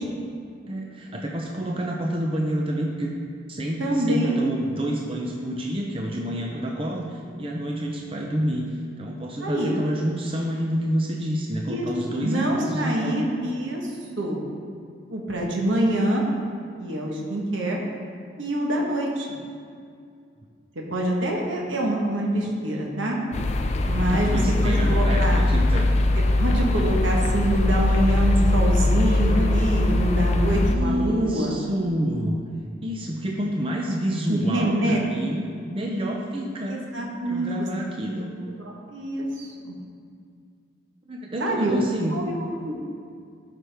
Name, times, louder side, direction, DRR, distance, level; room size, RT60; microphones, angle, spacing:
voice 1, 0.7-3.1 3.5-13.4 24.1-25.9 30.7-32.4 32.8-36.8 37.2-38.3 41.1-42.2, equal, 30° right, 0 dB, 0.6 m, -28 dB
voice 2, 3.8-4.4 9.4-9.8 11.7-13.9 14.2-14.5 15.1-16.2 16.8-17.8 18.4-19.3 20.9-23.2 23.9-25.4 26.4-31.6 34.3-35.0 36.7-37.7 38.6-39.7 41.4-41.8 42.1-42.7, right 1 dB, 80° right, -1 dB, 1.2 m, -25 dB
sound 1, 23.3-30.8, left 2 dB, 35° left, 0.4 m, -21 dB
12.5 x 5.8 x 3.5 m, 2.3 s
head